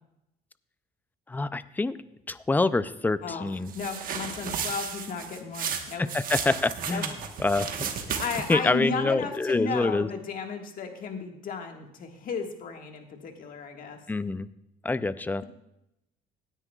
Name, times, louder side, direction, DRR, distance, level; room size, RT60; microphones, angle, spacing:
voice 1, 1.3-2.0 2.3-3.7 6.0-7.1 7.4-8.2 8.5-10.1 14.1-14.5 14.8-15.4, left 3 dB, 10° left, 15 dB, 0.4 m, -26 dB
voice 2, 3.7-6.0 6.9-7.0 8.2-14.0, left 5 dB, 55° left, 4 dB, 1.6 m, -34 dB
sound 1, 3.7-8.7, right 7 dB, 55° right, 1.2 m, -34 dB
17.0 x 9.9 x 2.3 m, 0.85 s
cardioid pair, 110°, 17 cm